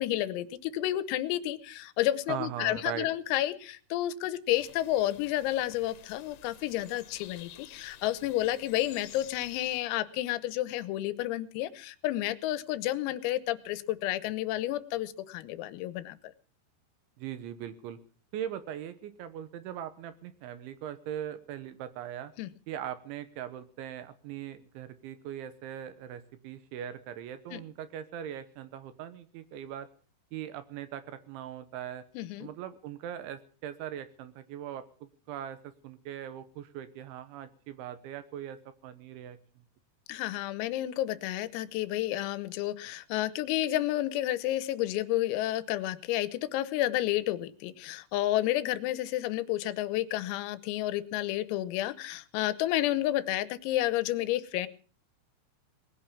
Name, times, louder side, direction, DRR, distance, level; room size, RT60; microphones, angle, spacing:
voice 1, 0.0-16.3 22.4-22.5 27.5-27.6 32.2-32.5 40.1-54.7, left 14 dB, 90° left, 15 dB, 3.7 m, -31 dB
voice 2, 2.3-3.1 17.2-18.0 18.3-22.3 22.7-29.9 30.3-32.0 32.4-39.4, right 10 dB, 75° right, 12 dB, 3.1 m, -40 dB
sound 1, 4.5-9.8, left 12 dB, 70° left, 3.1 m, -50 dB
19.5 x 9.3 x 7.2 m, 0.41 s
omnidirectional pair, 6.0 m